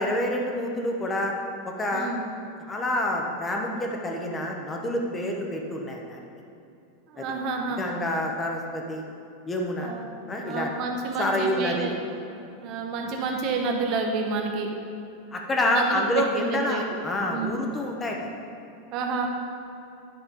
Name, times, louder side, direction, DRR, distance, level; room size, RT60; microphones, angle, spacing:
voice 1, 0.0-1.3 1.6-2.1 2.6-6.3 7.2-7.3 7.8-9.0 9.5-9.9 10.3-10.7 11.2-11.9 15.3-18.3, left 1 dB, 15° left, 1 dB, 0.9 m, -28 dB
voice 2, 1.9-2.2 7.1-7.8 9.8-10.1 10.4-12.0 12.6-14.7 15.6-16.8 17.3-17.5 18.9-19.3, right 4 dB, 40° right, 2 dB, 1.0 m, -29 dB
9.9 x 5.4 x 5.2 m, 2.8 s
supercardioid pair, 155°, 0 cm